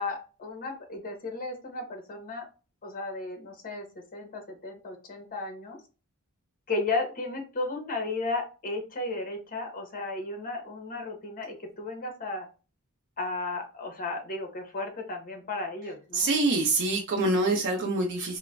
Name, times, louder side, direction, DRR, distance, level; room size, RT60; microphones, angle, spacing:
voice 1, 0.0-2.5 2.8-3.8 4.1-5.8 6.7-12.4 13.2-16.3, left 3 dB, 40° left, 3 dB, 0.7 m, -34 dB
voice 2, 16.1-18.4, right 2 dB, 55° right, 1 dB, 0.5 m, -25 dB
3.0 x 2.0 x 2.4 m, 0.33 s
head